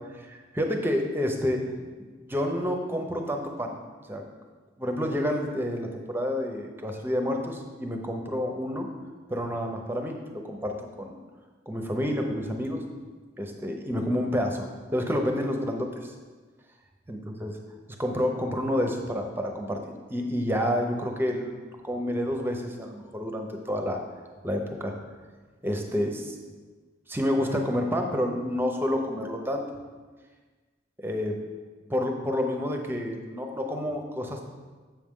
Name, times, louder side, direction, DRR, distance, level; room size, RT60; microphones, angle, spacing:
voice 1, 0.3-1.6 2.0-3.7 4.1-4.2 4.8-8.9 9.3-11.2 11.7-12.8 13.4-16.1 17.1-17.5 18.0-21.6 21.8-24.0 24.4-24.9 25.6-26.3 27.1-29.7 31.0-31.4 31.9-34.4, equal, 10° right, 3 dB, 0.7 m, -29 dB
7.4 x 6.3 x 3.7 m, 1.4 s
head